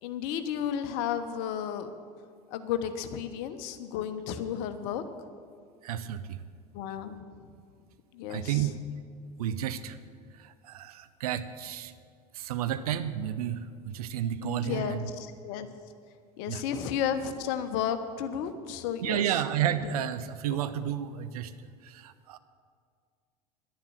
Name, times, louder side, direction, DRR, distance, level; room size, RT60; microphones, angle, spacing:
voice 1, 0.0-1.9 2.5-5.0 6.7-7.5 8.1-8.7 14.4-15.7 16.4-19.9 20.5-20.6, left 8 dB, 55° left, 10 dB, 1.0 m, -33 dB
voice 2, 5.8-6.4 8.3-8.8 9.4-10.0 10.3-11.9 12.3-15.1 16.5-16.6 19.0-21.5 21.8-22.4, right 10 dB, 70° right, 12 dB, 0.7 m, -31 dB
11.0 x 10.5 x 7.5 m, 2.1 s
figure-of-eight pair, 75°, 20 cm